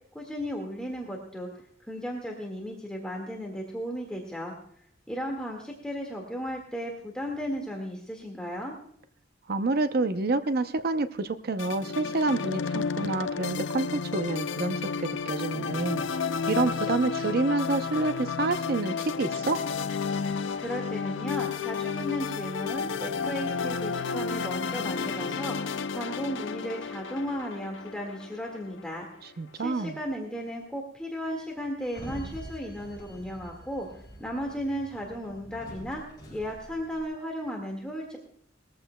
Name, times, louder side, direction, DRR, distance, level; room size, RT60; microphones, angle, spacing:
voice 1, 0.1-4.5 5.1-8.7 20.5-29.1 29.5-36.0 36.3-38.2, equal, 5° left, 0 dB, 1.8 m, -35 dB
voice 2, 9.5-16.0 16.5-19.6 29.4-30.0, right 3 dB, 55° right, 9 dB, 0.6 m, -28 dB
sound 1, 11.6-29.0, left 5 dB, 80° left, 0.5 m, -32 dB
Sliding door, 31.8-37.0, equal, 25° left, 4.4 m, -45 dB
20.0 x 14.5 x 2.2 m, 0.66 s
head